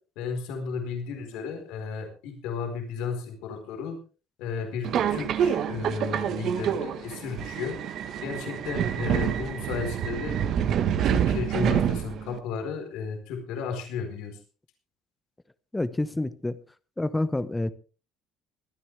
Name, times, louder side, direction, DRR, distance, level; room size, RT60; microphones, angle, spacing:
voice 1, 0.2-4.0 4.4-7.8 8.2-10.4 11.0-14.4, left 6 dB, 85° left, 4 dB, 4.4 m, -34 dB
Subway metro underground, 4.8-12.4, right 9 dB, 60° right, 1.4 m, -27 dB
voice 2, 15.7-16.6 17.0-17.7, left 2 dB, 10° left, 15 dB, 1.0 m, -28 dB
24.0 x 9.9 x 3.4 m, 0.35 s
cardioid pair, 110°, 0 cm